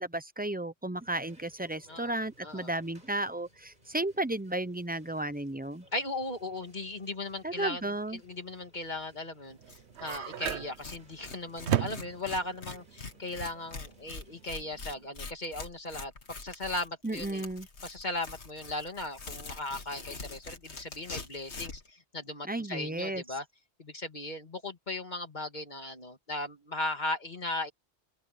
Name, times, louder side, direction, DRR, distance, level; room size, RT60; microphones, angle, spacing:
voice 1, 0.0-5.8 7.4-8.2 17.0-17.7 22.4-23.2, right 1 dB, 10° right, 0.6 m, -33 dB
sound 1, 1.0-14.5, right 1 dB, 45° right, 5.3 m, -62 dB
voice 2, 5.9-7.8 8.1-16.1 16.4-17.4 17.8-23.4 23.8-27.7, left 2 dB, 45° left, 2.5 m, -37 dB
sound 2, 9.5-15.1, right 10 dB, 85° right, 1.1 m, -35 dB
Tearing, 9.7-9.8 10.1-10.2 10.4-21.9, left 3 dB, 90° left, 2.3 m, -44 dB
open air
omnidirectional pair, 1.1 m